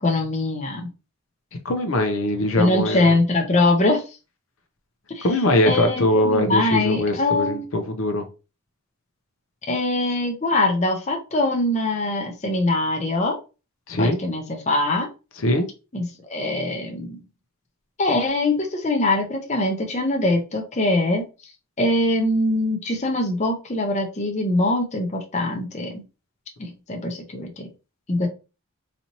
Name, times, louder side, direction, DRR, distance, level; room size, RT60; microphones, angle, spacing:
voice 1, 0.0-0.9 2.6-4.0 5.1-5.3 5.7-7.7 9.7-13.4 14.0-15.1 15.9-17.2 18.0-21.2 21.8-25.9 26.6-27.7 28.1-28.3, left 2 dB, 30° left, 2 dB, 0.6 m, -22 dB
voice 2, 1.6-3.1 5.2-8.3 13.9-14.2 15.4-15.7, left 1 dB, 70° left, 6 dB, 0.7 m, -21 dB
4.1 x 2.8 x 2.9 m, 0.31 s
head